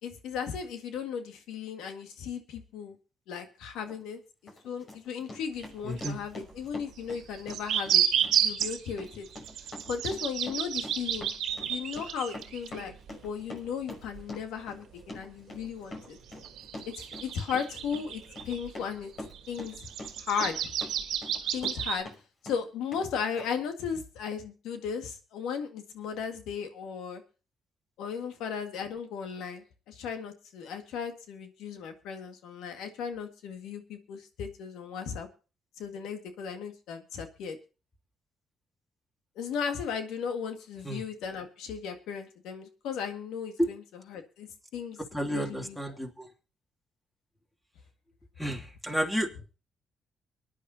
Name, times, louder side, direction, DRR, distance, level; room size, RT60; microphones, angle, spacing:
voice 1, 0.0-3.0 3.3-4.2 4.6-9.3 9.9-11.3 11.7-16.2 16.9-19.1 19.5-19.8 20.2-20.7 21.5-22.1 22.4-27.2 28.0-35.3 35.8-37.6 39.4-46.0, left 7 dB, 90° left, 6 dB, 1.9 m, -36 dB
Run, 3.8-4.0 4.5-22.2 22.5-23.1 23.4-23.5, left 1 dB, 55° left, 5.9 m, -45 dB
sound 1, 5.6-5.7 6.0-6.1 7.1-13.3 13.6-13.7 14.1-14.2 15.6-15.7 16.3-18.7 19.1-22.0, right 9 dB, 80° right, 1.5 m, -31 dB
voice 2, 5.8-6.2 40.8-41.0 43.6-43.7 45.1-46.3 48.4-49.3, equal, 5° left, 2 dB, 2.8 m, -31 dB
24.0 x 10.0 x 2.8 m, 0.34 s
cardioid pair, 90°, 0 cm